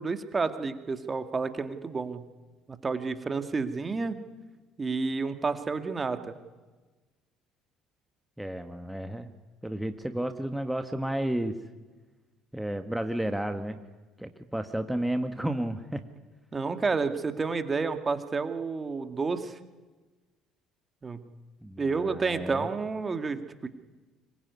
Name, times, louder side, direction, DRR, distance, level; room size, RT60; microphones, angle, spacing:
voice 1, 0.0-2.2 2.8-4.2 4.8-6.3 16.5-19.6 21.0-21.2 21.8-23.7, right 4 dB, 30° right, 8 dB, 2.3 m, -30 dB
voice 2, 8.4-9.3 9.6-11.6 12.5-13.8 14.2-16.0 21.6-22.7, right 1 dB, 5° right, 7 dB, 1.8 m, -32 dB
25.0 x 22.0 x 9.7 m, 1.3 s
hypercardioid pair, 60°, 0 cm